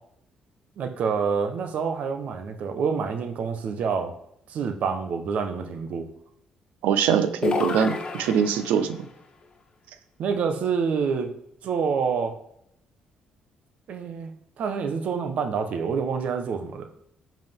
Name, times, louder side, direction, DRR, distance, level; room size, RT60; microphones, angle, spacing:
voice 1, 0.8-4.1 4.5-6.1 10.2-11.3 11.6-12.4 13.9-14.3 14.6-16.9, right 6 dB, 65° right, 7 dB, 1.1 m, -27 dB
voice 2, 6.8-9.0, right 7 dB, 90° right, 11 dB, 0.7 m, -23 dB
sound 1, 7.4-9.0, left 4 dB, 35° left, 1.2 m, -29 dB
11.0 x 5.1 x 3.7 m, 0.74 s
cardioid pair, 85°, 3 cm